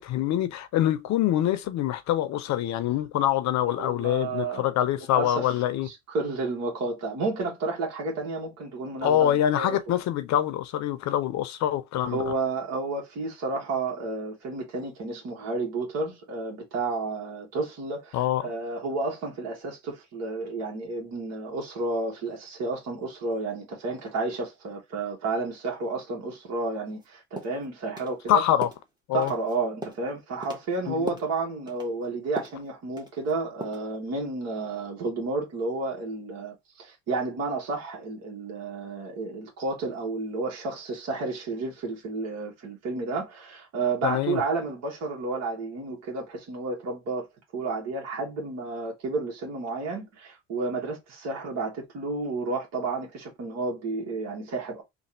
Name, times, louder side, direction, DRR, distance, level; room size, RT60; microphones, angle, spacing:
voice 1, 0.0-5.9 9.0-12.2 18.1-18.4 28.3-28.7 29.1-29.3 30.9-31.1 44.0-44.4, left 11 dB, 65° left, 0.7 m, -25 dB
voice 2, 3.7-4.6 5.0-5.5 5.8-9.8 12.0-28.4 29.1-47.3 47.5-54.8, right 3 dB, 55° right, 1.4 m, -31 dB
sound 1, 26.9-27.0 27.4-27.6 28.0-28.1 28.6-28.8 29.2-29.5 29.8-30.1 30.4-30.7 31.1-31.3 31.7-31.9 32.4-32.6 33.0-33.3 33.6-33.9, right 1 dB, 15° right, 1.2 m, -37 dB
3.4 x 2.4 x 4.1 m
cardioid pair, 95°, 31 cm